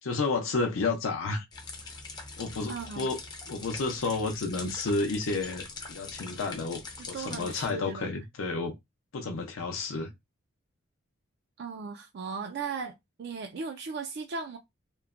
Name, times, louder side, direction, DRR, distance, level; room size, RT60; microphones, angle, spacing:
voice 1, 0.0-1.4 2.4-3.2 3.5-6.8 7.1-8.7 9.1-10.1, left 3 dB, 70° left, 0.5 m, -31 dB
sound 1, 1.5-7.7, left 3 dB, 20° left, 0.5 m, -43 dB
voice 2, 2.7-3.1 7.1-8.1 11.6-14.6, right 5 dB, 50° right, 0.3 m, -37 dB
2.9 x 2.1 x 2.4 m
head